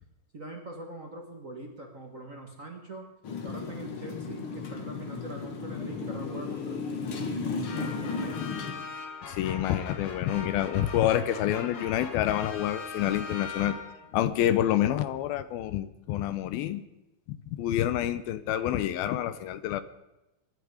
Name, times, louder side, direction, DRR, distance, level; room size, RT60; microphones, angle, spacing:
voice 1, 0.3-3.1 3.4-7.0 7.4-8.5, right 2 dB, 50° right, 1 dB, 0.9 m, -43 dB
Motorcycle, 3.2-8.7, left 4 dB, 50° left, 1.7 m, -34 dB
sound 1, 7.6-14.2, left 4 dB, 65° left, 3.8 m, -41 dB
voice 2, 9.3-13.8 14.1-16.8 17.3-19.8, left 12 dB, 85° left, 13 dB, 2.6 m, -28 dB
25.0 x 11.0 x 5.0 m, 0.94 s
omnidirectional pair, 4.3 m